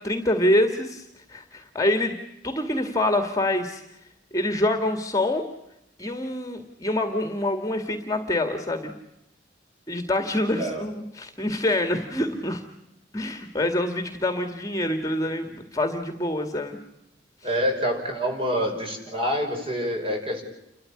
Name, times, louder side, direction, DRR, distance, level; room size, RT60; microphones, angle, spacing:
voice 1, 0.0-2.2 2.4-3.8 4.3-5.5 6.0-8.9 9.9-12.6 13.1-16.8, left 1 dB, 20° left, 6 dB, 2.1 m, -26 dB
voice 2, 10.6-10.9 17.4-20.4, equal, 30° right, 3 dB, 5.9 m, -26 dB
30.0 x 13.5 x 9.9 m, 0.85 s
head